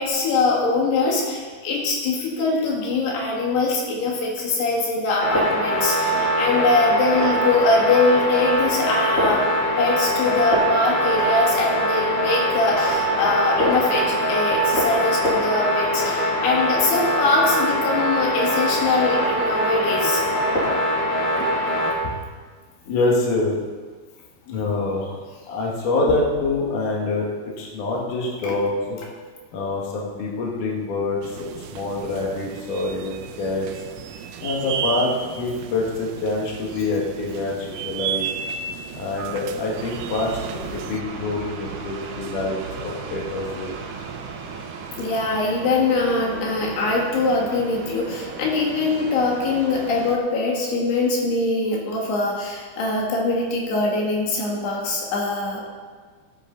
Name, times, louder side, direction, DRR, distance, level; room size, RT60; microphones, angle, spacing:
voice 1, 0.0-9.5 9.8-20.2 21.4-21.5 21.9-22.1 26.1-26.2 28.4-28.6 45.0-55.7, left 3 dB, 85° left, -2 dB, 4.0 m, -22 dB
sound 1, 5.2-21.9, equal, 35° left, 3.5 m, -22 dB
voice 2, 22.8-23.6 24.5-27.3 27.6-29.0 29.5-33.7 34.4-38.3 38.9-43.7, left 2 dB, 55° left, -3 dB, 3.1 m, -26 dB
sound 2, 31.2-41.0, right 7 dB, 85° right, 2.0 m, -33 dB
sound 3, 39.7-50.2, right 5 dB, 65° right, 2.3 m, -36 dB
18.0 x 8.5 x 4.0 m, 1.5 s
omnidirectional pair, 4.6 m